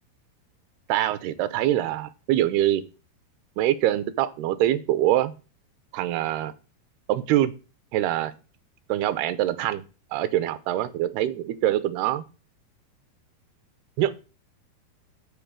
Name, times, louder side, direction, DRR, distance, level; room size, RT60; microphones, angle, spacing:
voice 1, 0.9-2.8 3.6-5.3 5.9-6.5 7.1-7.5 7.9-8.3 8.9-9.8 10.1-12.2 14.0-14.1, right 13 dB, 80° right, 13 dB, 2.7 m, -24 dB
8.6 x 4.4 x 7.4 m, 0.32 s
omnidirectional pair, 4.7 m